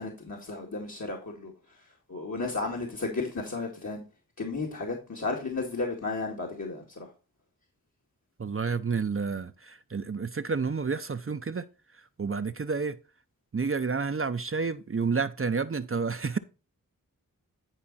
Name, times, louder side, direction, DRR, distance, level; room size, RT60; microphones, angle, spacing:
voice 1, 0.0-1.5 2.1-4.0 4.4-7.1, left 3 dB, 55° left, 2.3 m, -33 dB
voice 2, 8.4-11.7 11.9-13.0 13.5-16.4, right 5 dB, 40° right, 0.6 m, -30 dB
11.0 x 5.0 x 4.2 m
wide cardioid pair, 50°, 34 cm